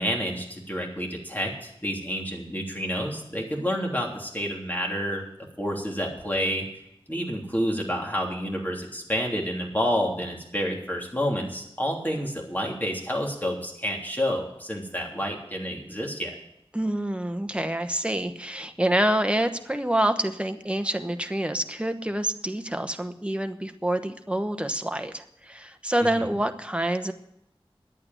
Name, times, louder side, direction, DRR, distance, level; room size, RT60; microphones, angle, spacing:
voice 1, 0.0-5.2 5.6-6.6 7.1-16.3 26.0-26.3, equal, 20° left, -1 dB, 3.2 m, -29 dB
voice 2, 16.7-27.1, right 1 dB, 10° right, 8 dB, 1.1 m, -27 dB
11.0 x 8.6 x 9.2 m, 0.77 s
wide cardioid pair, 50°, 10 cm